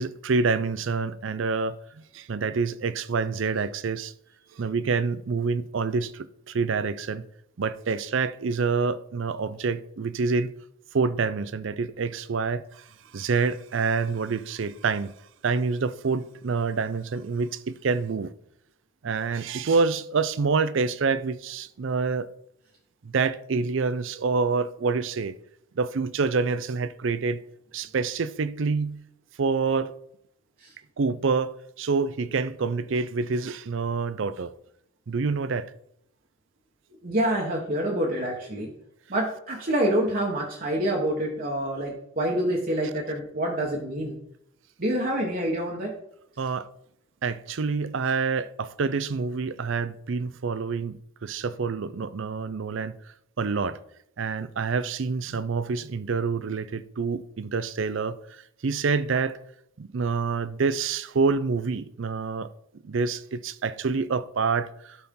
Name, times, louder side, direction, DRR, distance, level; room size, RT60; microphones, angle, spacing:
voice 1, 0.0-4.1 4.5-7.2 7.6-10.5 10.9-12.8 13.1-15.1 15.4-18.3 19.0-22.3 23.0-25.4 25.8-27.4 27.7-29.0 29.4-29.9 31.0-34.5 35.1-35.7 46.4-46.7 47.2-52.9 53.4-53.8 54.2-59.4 59.8-62.5 62.8-65.0, right 4 dB, 65° right, 0.5 m, -27 dB
voice 2, 37.0-38.7 39.1-44.2 44.8-45.9, right 1 dB, 45° right, 1.1 m, -27 dB
12.5 x 4.3 x 3.7 m
head